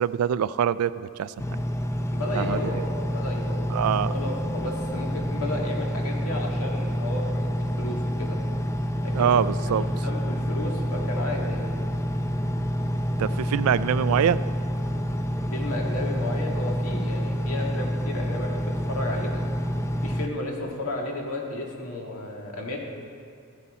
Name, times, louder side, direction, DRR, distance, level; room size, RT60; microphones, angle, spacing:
voice 1, 0.0-1.3 2.4-2.8 3.7-4.1 9.1-9.9 13.2-14.4, right 8 dB, 80° right, 17 dB, 0.3 m, -24 dB
Engine, 1.4-20.3, equal, 15° left, 0.4 m, -28 dB
voice 2, 2.1-3.7 4.0-8.4 9.0-9.4 9.9-11.8 15.5-19.4 20.0-22.8, left 1 dB, 80° left, -1 dB, 1.8 m, -33 dB
13.5 x 9.7 x 4.2 m, 2.4 s
head